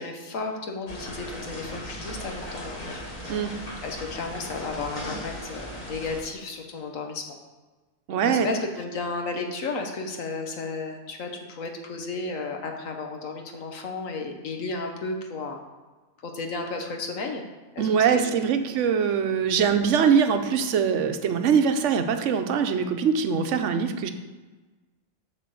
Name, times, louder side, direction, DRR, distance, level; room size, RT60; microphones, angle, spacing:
voice 1, 0.0-3.0 3.3-3.5 3.8-7.4 8.1-15.6 16.2-17.4 17.7-18.2 18.6-18.7, left 3 dB, 70° left, 3 dB, 1.5 m, -33 dB
sound 1, 0.9-6.2, equal, 30° left, 1.7 m, -37 dB
voice 2, 8.1-8.5 17.8-24.1, right 7 dB, 65° right, 7 dB, 1.0 m, -22 dB
7.6 x 5.7 x 6.9 m, 1.3 s
omnidirectional pair, 1.5 m